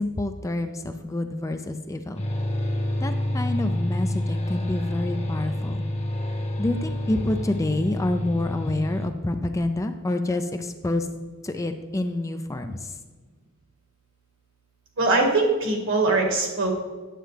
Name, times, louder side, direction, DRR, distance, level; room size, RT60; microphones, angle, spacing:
voice 1, 0.0-2.2 3.0-5.8 6.6-11.1 11.4-13.0, left 2 dB, 15° left, 7 dB, 0.4 m, -28 dB
sound 1, 2.2-9.1, left 1 dB, 30° left, 0.9 m, -28 dB
voice 2, 15.0-16.7, right 3 dB, 65° right, 1 dB, 1.7 m, -22 dB
9.1 x 7.7 x 3.3 m, 1.3 s
head